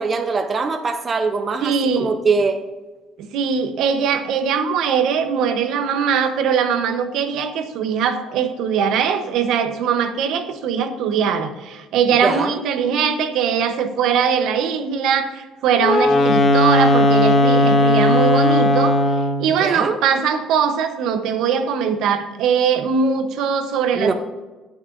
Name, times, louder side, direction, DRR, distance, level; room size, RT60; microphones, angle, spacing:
voice 1, 0.0-2.6 12.2-12.5 19.6-20.0 24.0-24.1, right 4 dB, 25° right, 7 dB, 0.6 m, -22 dB
voice 2, 1.6-2.1 3.3-19.0 19.4-24.1, right 7 dB, 70° right, 8 dB, 0.9 m, -21 dB
Wind instrument woodwind instrument, 15.8-19.5, left 2 dB, 35° left, 0.9 m, -16 dB
18.0 x 6.2 x 2.6 m, 1.3 s
cardioid pair, 140°, 0 cm